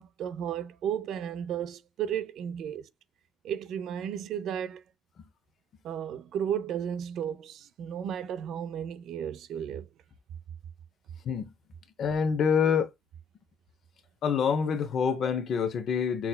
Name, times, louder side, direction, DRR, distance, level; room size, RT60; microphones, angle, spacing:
voice 1, 0.0-2.9 3.4-4.8 5.8-9.9, right 9 dB, 80° right, 0.4 m, -34 dB
voice 2, 12.0-12.9 14.2-16.3, left 6 dB, 65° left, 0.7 m, -26 dB
5.8 x 2.2 x 2.2 m
cardioid pair, 90°, 0 cm